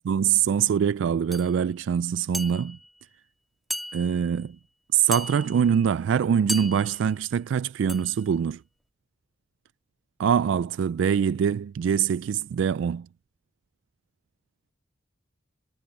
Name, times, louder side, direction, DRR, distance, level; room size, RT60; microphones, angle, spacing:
voice 1, 0.1-2.8 3.9-4.6 4.9-8.6 10.2-13.1, right 8 dB, 80° right, 0.3 m, -24 dB
sound 1, 1.3-1.5 2.3-2.9 3.7-4.3 5.1-5.7 6.5-7.1 7.9-8.2, equal, ahead, 2.2 m, -35 dB
head